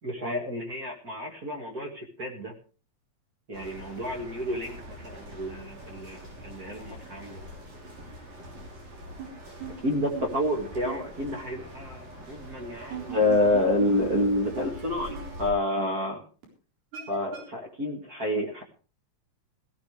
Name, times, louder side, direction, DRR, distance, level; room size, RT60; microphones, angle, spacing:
voice 1, 0.0-2.5 3.5-7.4 9.8-16.2 17.1-18.6, left 1 dB, 35° right, 2 dB, 2.2 m, -29 dB
sound 1, 3.5-15.5, equal, 60° right, 5.5 m, -44 dB
sound 2, 9.2-9.3 9.6-9.7 10.1-10.3 10.8-11.0 12.8-13.9 14.1-14.2 14.5-14.7 15.1-15.2 15.8-15.9 16.4-16.5 16.9-17.4, right 10 dB, 80° right, 5.5 m, -37 dB
17.5 x 15.5 x 3.3 m, 0.37 s
omnidirectional pair, 3.5 m